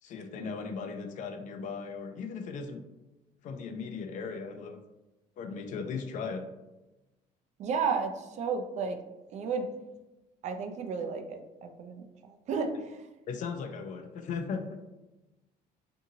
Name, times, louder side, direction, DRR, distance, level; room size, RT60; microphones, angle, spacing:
voice 1, 0.0-2.8 3.4-4.8 5.4-6.5 13.3-14.8, left 5 dB, 50° left, 7 dB, 0.4 m, -37 dB
voice 2, 7.6-9.0 9.3-9.7 10.4-13.1, right 5 dB, 45° right, 5 dB, 0.4 m, -33 dB
2.6 x 2.6 x 2.7 m, 1.0 s
cardioid pair, 130°, 16 cm